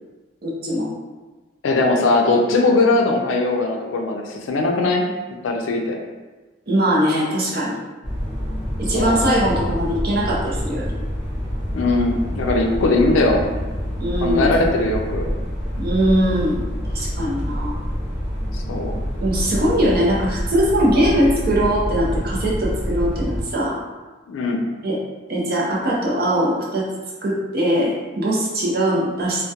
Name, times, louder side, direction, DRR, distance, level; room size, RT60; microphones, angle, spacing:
voice 1, 0.4-0.9 6.7-7.8 8.8-10.9 14.0-14.6 15.8-16.6 16.9-17.7 19.2-23.8 24.8-25.0 25.3-26.9 27.2-29.4, equal, 50° right, -4 dB, 0.5 m, -21 dB
voice 2, 1.6-5.1 5.4-6.0 8.9-9.2 11.7-13.4 14.2-15.2 18.5-18.9 24.3-24.7, left 2 dB, 85° left, 2 dB, 0.4 m, -20 dB
sound 1, 8.0-23.4, equal, 5° right, 0.6 m, -27 dB
2.2 x 2.1 x 2.7 m, 1.2 s
head